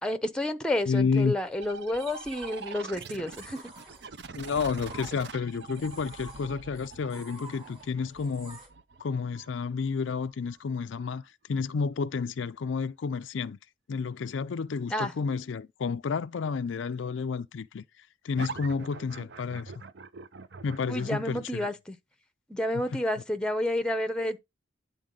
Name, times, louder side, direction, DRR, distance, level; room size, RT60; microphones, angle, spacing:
voice 1, 0.0-3.6 14.9-15.1 20.9-22.0 22.5-24.4, left 1 dB, 5° left, 0.8 m, -30 dB
voice 2, 0.9-1.3 4.4-8.6 9.0-11.2 11.5-13.6 13.9-17.8 18.2-19.7 20.6-21.7 22.9-23.0, left 5 dB, 75° left, 0.4 m, -30 dB
sound 1, 1.5-8.7, right 1 dB, 25° right, 3.6 m, -51 dB
sound 2, 1.6-11.0 18.4-21.2, right 4 dB, 60° right, 0.6 m, -44 dB
10.0 x 3.9 x 3.8 m
head